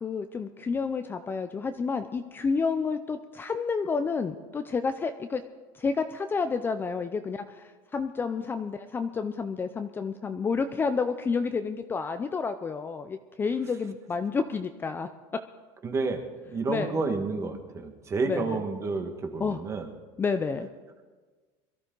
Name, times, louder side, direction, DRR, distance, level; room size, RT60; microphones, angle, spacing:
voice 1, 0.0-5.4 5.8-15.1 16.7-17.0 18.3-18.6 19.4-19.6 20.2-20.7, left 5 dB, 20° left, 8 dB, 0.5 m, -30 dB
voice 2, 15.8-16.2 16.5-19.9, right 4 dB, 25° right, 5 dB, 1.6 m, -30 dB
22.5 x 13.5 x 3.9 m, 1.3 s
cardioid pair, 140°, 11 cm